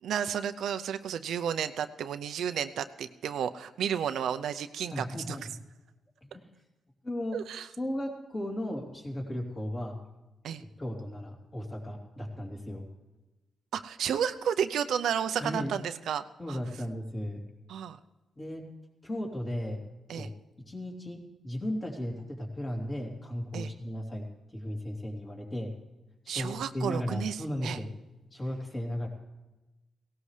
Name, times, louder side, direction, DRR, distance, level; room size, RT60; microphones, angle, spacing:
voice 1, 0.0-5.5 7.3-7.7 10.4-10.6 13.7-16.6 17.7-18.0 20.1-20.3 23.5-23.7 26.3-27.8, right 8 dB, 85° right, 9 dB, 0.6 m, -32 dB
voice 2, 4.9-5.4 6.2-6.5 7.0-7.4 7.8-10.0 10.8-12.9 15.4-15.7 16.4-17.4 18.4-18.6 19.0-19.8 20.1-20.3 20.7-25.7 26.2-27.9 28.3-29.1, left 1 dB, 25° left, 0 dB, 3.1 m, -35 dB
18.0 x 17.5 x 3.3 m, 1.1 s
cardioid pair, 130°, 0 cm